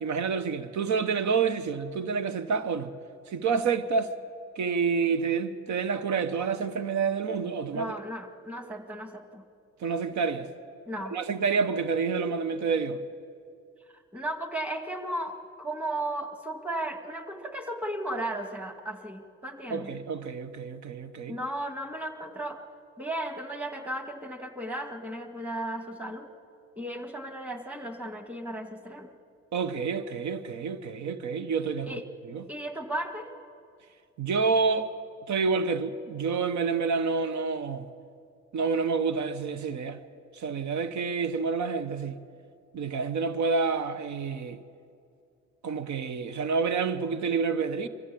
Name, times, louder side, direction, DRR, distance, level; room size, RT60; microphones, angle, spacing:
voice 1, 0.0-2.9 3.3-4.1 4.6-7.9 9.8-10.5 11.1-13.0 19.7-21.4 29.5-32.4 34.2-34.9 35.3-37.9 38.5-40.0 40.3-42.2 42.7-44.6 45.6-47.9, right 5 dB, 70° right, 1.0 m, -28 dB
voice 2, 7.7-9.4 10.9-11.1 14.1-19.9 21.3-22.6 23.0-26.3 26.8-29.1 31.9-32.0 32.5-33.3, right 1 dB, 5° right, 1.8 m, -35 dB
23.5 x 15.0 x 8.4 m
cardioid pair, 90°, 30 cm